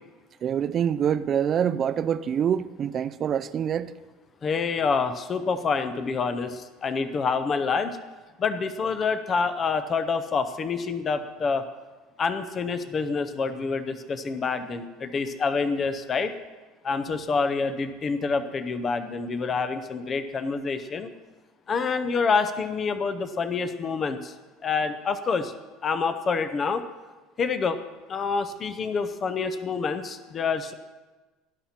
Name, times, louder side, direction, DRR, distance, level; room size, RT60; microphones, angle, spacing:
voice 1, 0.4-3.9, right 8 dB, 30° right, 14 dB, 0.3 m, -25 dB
voice 2, 4.4-7.9 8.4-11.6 12.2-16.3 16.8-21.1 21.7-24.3 24.6-25.5 25.8-26.8 27.4-27.8 28.1-30.7, left 5 dB, 20° left, 10 dB, 0.6 m, -27 dB
18.0 x 11.5 x 4.3 m, 1.2 s
cardioid pair, 170°, 0 cm